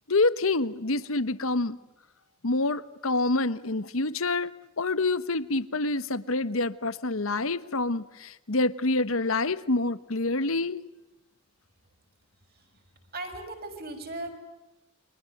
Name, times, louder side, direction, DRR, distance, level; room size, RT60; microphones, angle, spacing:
voice 1, 0.1-1.8 2.4-10.8, left 2 dB, 75° left, 1.2 m, -27 dB
voice 2, 13.1-14.3, right 2 dB, 45° right, 6.5 m, -37 dB
29.5 x 25.0 x 7.9 m
head